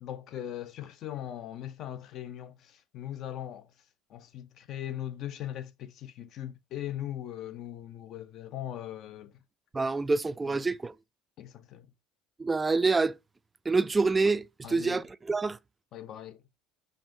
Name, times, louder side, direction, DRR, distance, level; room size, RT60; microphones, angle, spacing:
voice 1, 0.0-3.7 4.1-9.3 10.5-10.6 11.4-11.9 14.6-15.0 15.9-16.4, left 11 dB, 55° left, 0.6 m, -40 dB
voice 2, 9.7-10.9 12.4-13.2 13.7-15.6, right 3 dB, 20° right, 0.3 m, -27 dB
5.1 x 2.6 x 2.6 m
hypercardioid pair, 65°, 0 cm